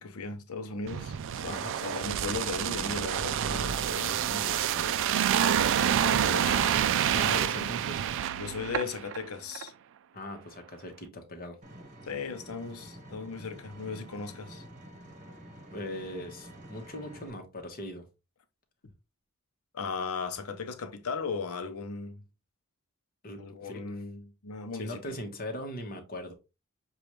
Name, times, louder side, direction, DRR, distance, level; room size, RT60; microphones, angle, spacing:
voice 1, 0.0-5.1 6.0-6.7 8.4-9.7 12.0-14.6 19.7-22.2 23.4-25.2, left 4 dB, 75° left, 0.7 m, -37 dB
sound 1, 0.9-9.2 9.5-9.7, right 9 dB, 60° right, 0.3 m, -28 dB
voice 2, 7.1-8.0 10.1-11.6 15.7-18.0 23.2-23.9 24.8-26.3, left 1 dB, 45° left, 1.1 m, -39 dB
Vehicle, 11.6-17.3, right 1 dB, 35° right, 1.0 m, -49 dB
6.8 x 2.4 x 3.0 m
head